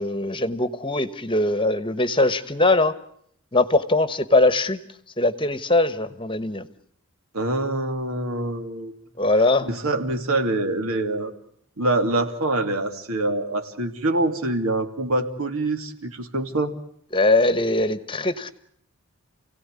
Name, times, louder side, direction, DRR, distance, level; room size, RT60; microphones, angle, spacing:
voice 1, 0.0-2.9 3.5-4.8 5.2-6.7 9.2-9.7 17.1-18.5, left 2 dB, 25° left, 14 dB, 1.2 m, -21 dB
voice 2, 7.3-8.9 9.6-11.3 11.8-16.7, right 2 dB, 80° right, 7 dB, 2.8 m, -25 dB
29.5 x 17.5 x 9.7 m, 0.70 s
head